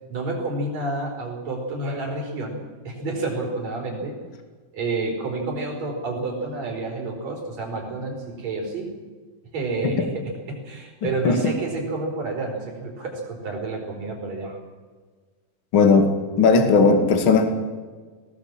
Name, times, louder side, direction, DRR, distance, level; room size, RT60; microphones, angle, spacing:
voice 1, 0.1-2.6 2.8-4.2 4.7-9.0 9.5-14.6, right 2 dB, 45° right, 0 dB, 5.5 m, -29 dB
voice 2, 11.0-11.4 15.7-16.1 16.4-17.5, left 4 dB, 40° left, 6 dB, 2.4 m, -17 dB
19.0 x 18.5 x 7.6 m, 1.5 s
omnidirectional pair, 4.4 m